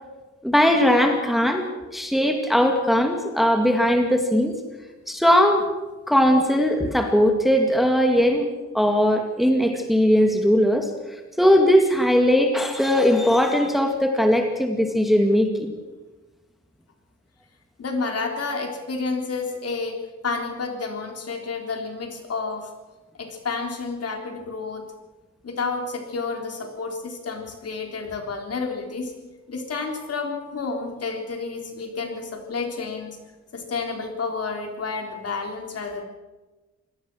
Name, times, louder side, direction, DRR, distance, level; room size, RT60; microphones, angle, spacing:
voice 1, 0.4-1.7 1.9-4.5 5.1-5.6 6.1-8.5 8.7-10.9 11.4-15.7, equal, ahead, 4 dB, 2.1 m, -19 dB
voice 2, 17.8-20.0 20.2-22.7 23.2-24.8 25.4-29.1 29.5-33.2 33.5-36.0, left 4 dB, 55° left, 3 dB, 3.7 m, -30 dB
25.5 x 18.0 x 6.3 m, 1.2 s
wide cardioid pair, 155°, 29 cm